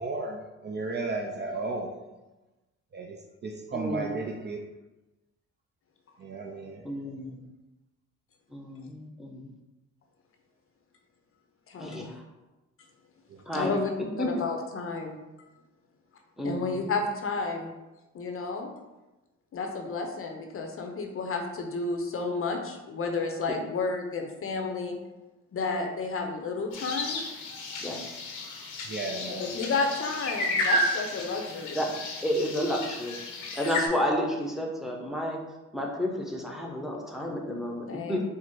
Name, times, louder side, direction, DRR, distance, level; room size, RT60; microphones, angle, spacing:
voice 1, 0.0-2.0 2.9-3.2 3.4-4.6 6.2-6.8 13.3-13.7 28.9-29.5, right 3 dB, 35° right, 3 dB, 0.5 m, -34 dB
voice 2, 3.7-4.1 6.8-7.4 8.5-9.4 11.8-12.1 13.5-13.8 14.2-14.3 16.4-16.9 27.8-28.2 31.7-31.9 32.2-33.2 33.6-35.4 35.7-38.2, equal, ahead, 0 dB, 0.8 m, -31 dB
voice 3, 11.7-12.1 13.5-13.9 14.2-15.2 16.4-17.7 18.1-18.7 19.5-25.0 25.5-27.2 29.2-31.8 37.9-38.2, left 3 dB, 45° left, 3 dB, 0.7 m, -31 dB
sound 1, 26.7-33.9, left 1 dB, 85° left, 0.9 m, -32 dB
4.4 x 2.0 x 4.5 m, 1.1 s
cardioid pair, 90°, 30 cm